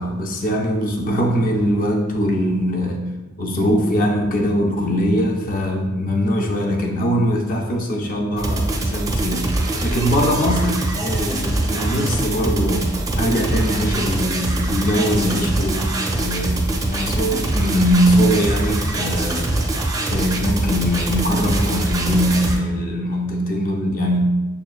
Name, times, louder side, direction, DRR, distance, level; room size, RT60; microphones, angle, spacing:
voice 1, 0.0-3.0 3.4-12.9 13.2-19.6 20.0-24.3, equal, 40° left, 2 dB, 0.4 m, -21 dB
sound 1, 8.4-22.6, right 2 dB, 15° right, 0.4 m, -23 dB
6.5 x 2.4 x 2.3 m, 1.2 s
head